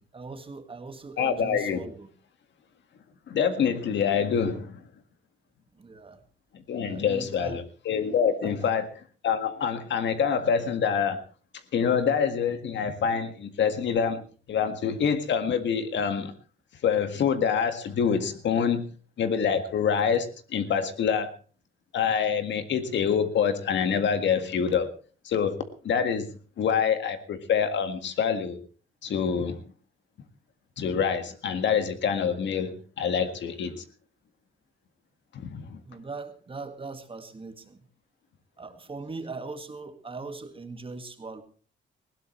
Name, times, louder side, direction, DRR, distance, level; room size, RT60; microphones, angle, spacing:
voice 1, 0.0-2.1 5.7-6.2 6.8-7.6 8.4-8.7 35.8-37.9 38.6-41.4, right 3 dB, 25° right, 1.9 m, -40 dB
voice 2, 1.2-1.8 3.3-4.8 6.7-8.9 9.2-11.2 11.7-14.2 14.5-16.3 16.8-18.9 19.2-21.3 21.9-24.9 25.2-26.3 26.6-28.6 29.0-29.6 30.8-33.8 35.3-35.8, left 7 dB, 65° left, 1.8 m, -26 dB
19.5 x 16.5 x 3.2 m
cardioid pair, 90°, 20 cm